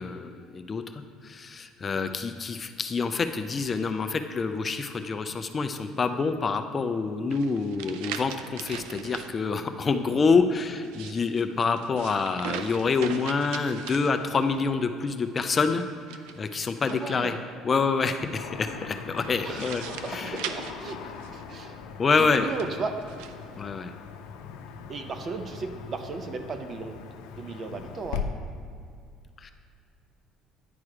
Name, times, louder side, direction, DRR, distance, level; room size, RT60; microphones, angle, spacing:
voice 1, 0.0-15.8 16.4-17.3 17.6-19.8 20.1-20.4 22.0-22.5 23.6-23.9 29.4-29.5, left 4 dB, 25° left, 8 dB, 0.4 m, -27 dB
sound 1, 7.3-9.3 10.7-14.6 16.0-17.3 19.2-21.6 22.3-23.3, right 8 dB, 90° right, 0.4 m, -40 dB
voice 2, 16.9-17.4 19.4-21.8 22.2-23.0 24.9-28.3, right 4 dB, 35° right, 7 dB, 0.6 m, -36 dB
Car passing by / Traffic noise roadway noise, 18.4-28.2, left 7 dB, 90° left, 0.6 m, -40 dB
9.7 x 4.8 x 4.9 m, 2.3 s
cardioid pair, 130°, 0 cm